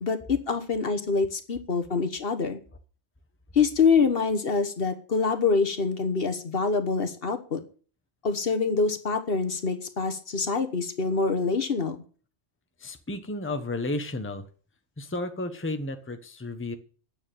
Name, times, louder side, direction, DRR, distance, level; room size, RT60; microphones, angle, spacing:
voice 1, 0.0-2.6 3.5-7.6 8.2-12.0, left 4 dB, 55° left, 8 dB, 1.4 m, -25 dB
voice 2, 12.8-14.5 15.0-16.8, left 2 dB, 10° left, 7 dB, 1.0 m, -32 dB
9.6 x 6.9 x 9.0 m, 0.40 s
omnidirectional pair, 1.2 m